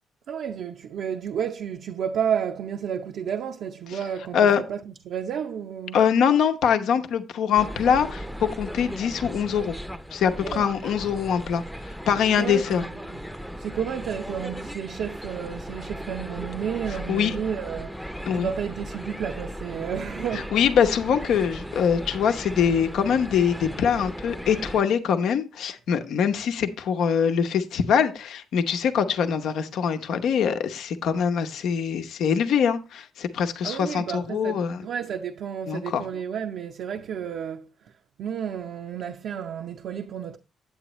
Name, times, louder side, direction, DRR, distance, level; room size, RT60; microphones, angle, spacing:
voice 1, 0.3-4.8 5.1-6.0 10.4-10.6 12.4-13.2 13.6-18.0 18.3-20.5 33.6-37.7 38.2-40.4, right 8 dB, 70° right, 0.6 m, -31 dB
voice 2, 5.9-8.2 8.6-9.7 10.1-11.6 12.1-12.8 17.1-17.3 18.3-18.5 20.5-34.8 35.7-36.0, left 7 dB, 75° left, 0.8 m, -23 dB
sound 1, 7.6-24.8, equal, ahead, 0.6 m, -37 dB
8.9 x 7.9 x 3.1 m
cardioid pair, 90°, 0 cm